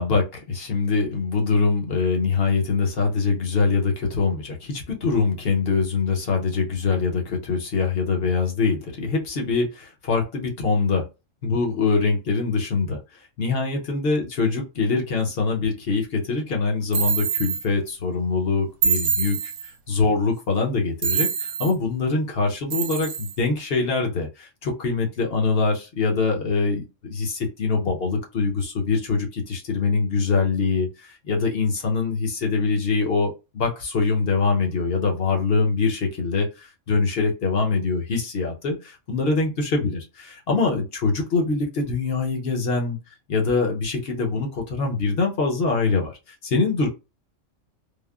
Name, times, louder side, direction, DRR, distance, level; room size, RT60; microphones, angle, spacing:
voice 1, 0.0-11.0 11.4-13.0 13.4-40.0 40.5-43.0 43.3-46.9, left 4 dB, 55° left, 1 dB, 0.9 m, -24 dB
sound 1, 16.9-17.6 18.8-19.7 21.0-21.7 22.7-23.3, right 6 dB, 70° right, 0.9 m, -25 dB
3.5 x 2.0 x 2.3 m, 0.27 s
omnidirectional pair, 1.3 m